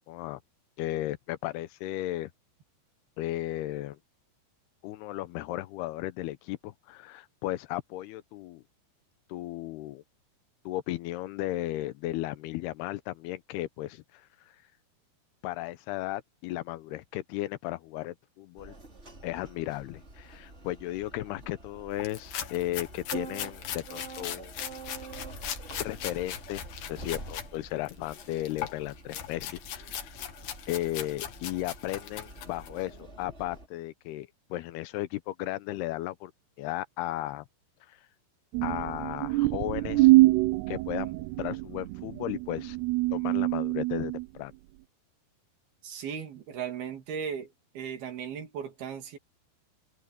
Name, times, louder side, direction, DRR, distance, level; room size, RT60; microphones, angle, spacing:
voice 1, 0.1-0.4 0.8-2.3 3.2-4.0 4.8-8.6 9.3-10.0 10.7-14.2 15.4-18.7 19.2-24.5 25.8-30.2 30.7-36.3 36.6-37.5 37.9-38.0 38.6-40.1 40.7-42.8 43.1-44.5, left 15 dB, 85° left, 2.7 m, -35 dB
sound 1, 18.6-33.7, right 3 dB, 15° right, 3.9 m, -46 dB
sound 2, 22.0-27.5 27.9-32.8, left 10 dB, 70° left, 3.6 m, -39 dB
sound 3, 38.5-44.3, right 21 dB, 85° right, 2.6 m, -25 dB
voice 2, 45.8-47.5 47.7-49.2, right 7 dB, 70° right, 4.6 m, -36 dB
omnidirectional pair, 4.7 m